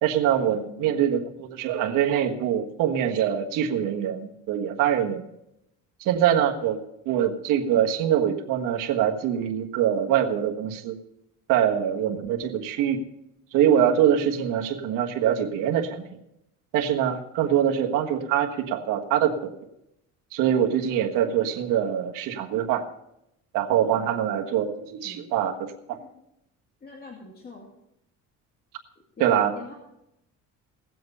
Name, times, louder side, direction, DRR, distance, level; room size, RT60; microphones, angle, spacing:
voice 1, 0.0-5.3 6.0-6.8 7.0-10.9 11.5-13.0 13.5-16.0 16.7-19.5 20.3-22.8 23.5-26.0 29.2-29.7, right 9 dB, 90° right, 2 dB, 1.5 m, -24 dB
voice 2, 0.5-1.0 23.9-24.6 25.0-25.4 25.9-26.1 26.8-27.7 29.2-29.7, left 3 dB, 30° left, -1 dB, 2.3 m, -44 dB
18.0 x 7.8 x 5.4 m, 0.82 s
cardioid pair, 125°, 31 cm